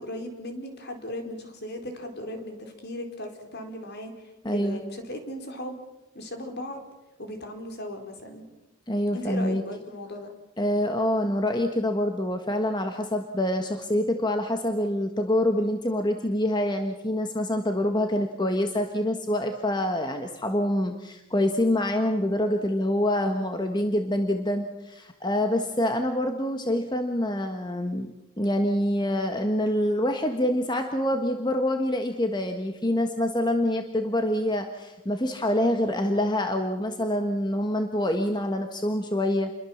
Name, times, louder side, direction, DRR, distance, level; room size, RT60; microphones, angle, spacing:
voice 1, 0.0-5.8 6.1-6.8 7.2-8.5 9.1-10.3, left 1 dB, 50° left, 5 dB, 4.5 m, -37 dB
voice 2, 4.4-4.8 8.9-9.6 10.6-28.1 28.4-39.6, left 1 dB, 20° left, 5 dB, 1.5 m, -26 dB
29.0 x 22.5 x 7.3 m, 1.0 s
head